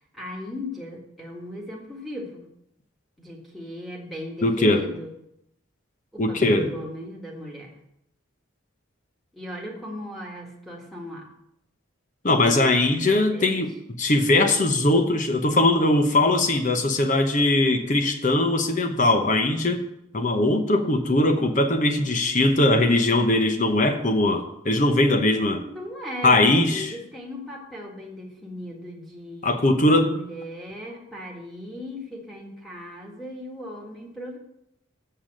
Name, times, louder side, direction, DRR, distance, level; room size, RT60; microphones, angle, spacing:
voice 1, 0.1-2.5 3.2-5.1 6.1-7.7 9.3-11.3 13.3-13.6 25.7-29.5 29.9-34.4, left 1 dB, ahead, -3 dB, 1.8 m, -37 dB
voice 2, 4.4-4.8 6.2-6.7 12.2-13.7 14.0-19.8 20.1-25.6 26.2-26.9 29.4-30.1, left 2 dB, 40° left, 6 dB, 0.9 m, -20 dB
7.5 x 6.8 x 6.5 m, 0.78 s
head